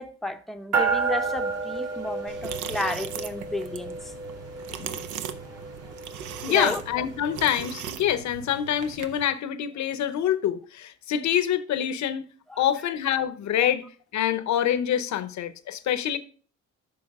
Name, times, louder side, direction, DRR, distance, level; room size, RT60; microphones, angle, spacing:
voice 1, 0.0-4.1 6.5-6.8 12.5-12.6 13.6-13.7, left 1 dB, ahead, 0.7 m, -32 dB
sound 1, 0.7-8.4, right 4 dB, 55° right, 2.6 m, -32 dB
sound 2, 2.3-9.3, right 9 dB, 80° right, 0.7 m, -39 dB
voice 2, 4.7-5.1 6.4-12.2 12.6-13.8 14.1-16.2, left 10 dB, 65° left, 0.8 m, -26 dB
9.6 x 6.0 x 3.5 m
cardioid pair, 90°, 30 cm